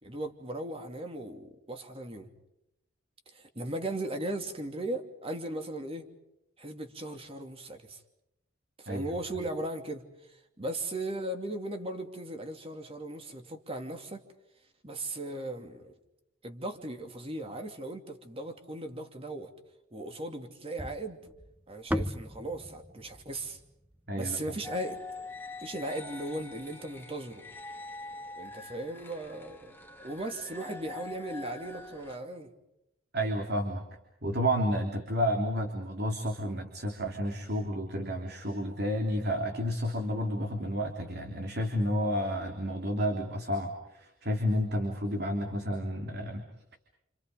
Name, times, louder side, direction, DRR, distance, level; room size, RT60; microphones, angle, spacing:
voice 1, 0.0-2.3 3.3-6.1 6.6-8.0 8.8-14.2 14.8-15.9 16.4-19.5 19.9-21.2 21.7-23.6 24.1-25.0 25.6-27.4 28.4-32.5, right 1 dB, 25° right, 5 dB, 2.8 m, -37 dB
sound 1, 20.8-25.1, equal, 5° right, 0.8 m, -38 dB
voice 2, 24.1-24.6 33.1-33.8 34.2-46.4, equal, 50° right, 3 dB, 3.2 m, -31 dB
sound 2, 24.6-32.2, left 3 dB, 10° left, 1.9 m, -44 dB
30.0 x 28.0 x 5.3 m, 0.86 s
head